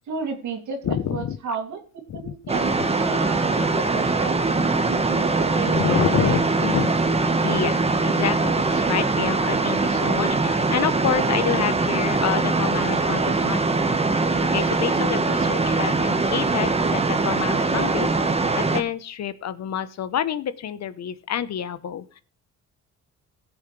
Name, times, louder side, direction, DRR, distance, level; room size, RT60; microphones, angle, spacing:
voice 1, 0.1-1.8 2.1-6.4, right 5 dB, 70° right, 5 dB, 2.5 m, -33 dB
voice 2, 0.8-1.6 2.1-2.4 5.7-7.1 7.4-13.8 14.5-18.1 18.5-22.2, left 9 dB, 60° left, 14 dB, 1.0 m, -28 dB
sound 1, 2.5-18.8, right 3 dB, 20° right, 1.4 m, -22 dB
17.0 x 7.2 x 3.3 m, 0.40 s
cardioid pair, 90°, 30 cm